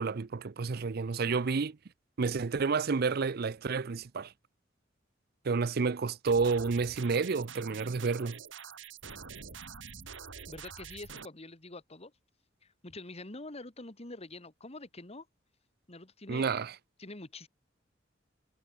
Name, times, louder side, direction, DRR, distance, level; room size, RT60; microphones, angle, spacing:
voice 1, 0.0-1.8 2.2-4.3 5.4-8.4 16.3-16.7, right 4 dB, 55° right, 0.5 m, -30 dB
sound 1, 6.3-11.3, right 6 dB, 90° right, 3.6 m, -46 dB
voice 2, 10.5-12.1 12.8-15.3 15.9-16.5 17.0-17.5, left 2 dB, 35° left, 2.0 m, -45 dB
head